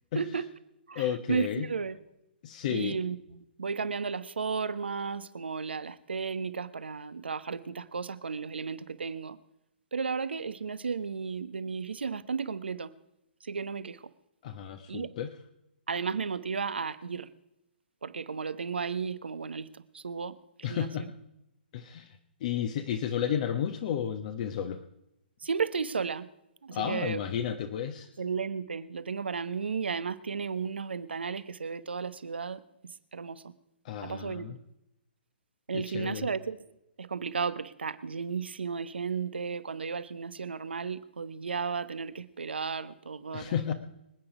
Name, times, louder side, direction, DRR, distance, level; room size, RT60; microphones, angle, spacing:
voice 1, 0.1-0.5 0.9-2.0 2.7-9.4 9.9-12.9 13.4-14.0 14.9-15.1 15.9-17.3 18.0-21.1 25.4-26.3 26.6-27.2 28.2-32.6 33.1-33.4 34.0-34.6 35.7-36.6 37.0-43.7, right 5 dB, 80° right, 1.0 m, -34 dB
voice 2, 0.9-1.7 2.4-3.0 14.4-15.3 20.6-21.1 21.7-24.8 26.7-28.1 33.8-34.6 35.7-36.3 43.3-43.7, left 9 dB, 45° left, 1.1 m, -32 dB
25.0 x 8.8 x 4.9 m
hypercardioid pair, 130°, 6 cm